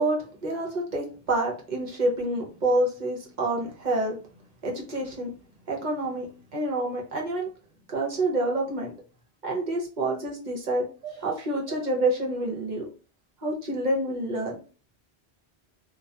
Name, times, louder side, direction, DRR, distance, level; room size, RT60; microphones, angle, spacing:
voice 1, 0.0-4.2 4.6-5.3 5.7-6.3 6.5-7.5 7.9-8.9 9.4-12.9 13.4-14.6, right 2 dB, 50° right, 0 dB, 0.7 m, -28 dB
2.2 x 2.2 x 2.6 m, 0.37 s
omnidirectional pair, 1.1 m